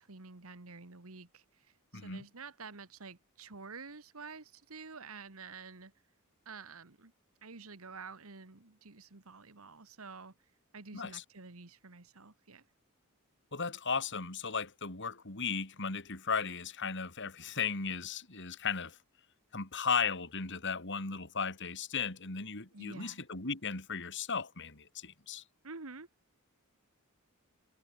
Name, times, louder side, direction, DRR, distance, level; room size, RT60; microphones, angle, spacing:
voice 1, 0.0-5.9 6.4-7.1 7.4-12.6 22.7-23.2 25.6-26.1, right 4 dB, 75° right, 1.7 m, -49 dB
voice 2, 1.9-2.2 10.9-11.2 13.5-19.0 19.5-25.4, left 5 dB, 55° left, 3.7 m, -36 dB
head